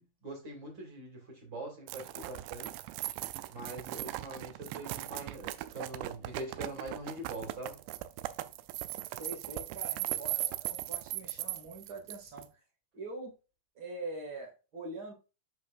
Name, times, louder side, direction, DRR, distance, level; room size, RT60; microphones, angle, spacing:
voice 1, 0.0-2.7 3.5-7.8, right 2 dB, 35° right, 1 dB, 2.1 m, -43 dB
sound 1, 1.9-12.4, right 16 dB, 85° right, 2.5 m, -38 dB
voice 2, 9.1-12.6 12.9-13.3 13.7-15.1, right 2 dB, 65° right, -2 dB, 1.0 m, -43 dB
7.5 x 5.9 x 2.4 m, 0.31 s
omnidirectional pair, 5.4 m